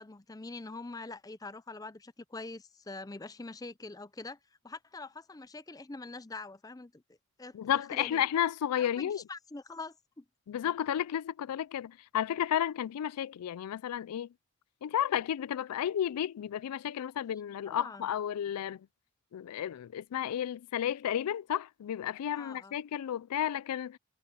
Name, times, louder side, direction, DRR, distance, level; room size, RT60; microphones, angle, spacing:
voice 1, 0.0-4.4 4.6-7.0 7.4-8.2 8.8-10.2 17.1-17.2 17.7-18.1 22.4-22.8, left 3 dB, 15° left, 0.5 m, -44 dB
voice 2, 7.5-9.2 10.5-14.3 14.8-18.8 19.3-24.0, left 10 dB, 90° left, 0.3 m, -32 dB
head